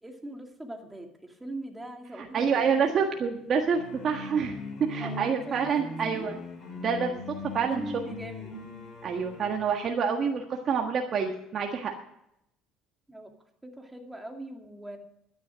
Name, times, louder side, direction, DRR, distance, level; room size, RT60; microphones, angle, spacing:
voice 1, 0.0-3.2 5.0-5.9 6.1-6.3 7.7-8.5 13.1-13.3 13.6-15.0, right 1 dB, 10° right, 3 dB, 2.4 m, -41 dB
voice 2, 2.1-4.6 4.9-6.4 6.8-7.2 7.5-7.8 9.0-11.9, right 6 dB, 45° right, 2 dB, 1.5 m, -27 dB
sound 1, 3.7-9.6, left 2 dB, 35° left, 6.0 m, -40 dB
12.0 x 10.5 x 6.2 m, 0.78 s
supercardioid pair, 105°, 0 cm